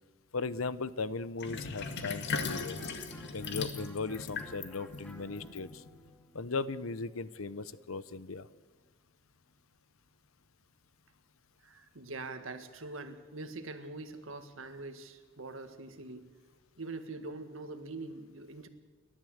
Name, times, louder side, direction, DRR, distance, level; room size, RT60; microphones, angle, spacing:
voice 1, 0.3-2.8 3.3-5.8 6.3-8.5, left 4 dB, 90° left, 16 dB, 0.9 m, -37 dB
Sink (filling or washing), 1.4-6.1, left 4 dB, 60° left, 2.0 m, -39 dB
Electric guitar, 2.4-8.1, equal, 5° left, 2.0 m, -56 dB
voice 2, 11.6-16.3 16.8-18.7, right 3 dB, 70° right, 8 dB, 1.9 m, -43 dB
29.5 x 12.5 x 8.1 m, 1.4 s
head